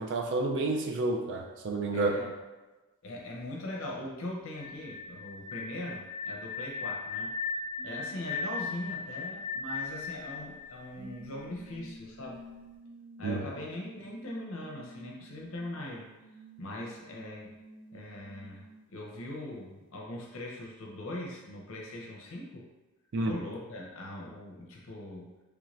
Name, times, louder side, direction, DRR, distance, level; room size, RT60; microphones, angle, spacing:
voice 1, 0.0-2.2 13.2-13.4 23.1-23.4, right 2 dB, 55° right, 2 dB, 0.4 m, -30 dB
voice 2, 1.9-2.3 3.0-7.3 7.8-12.4 13.2-16.1 16.6-17.6 17.9-22.7 23.2-25.3, left 1 dB, 60° left, -1 dB, 0.6 m, -41 dB
sound 1, 4.5-11.4, left 4 dB, 15° left, 0.5 m, -37 dB
sound 2, 7.8-8.9 9.8-9.9 10.6-10.7 10.9-18.8 19.3-19.4, right 1 dB, 35° right, 0.8 m, -51 dB
3.3 x 2.5 x 3.1 m, 1.2 s
head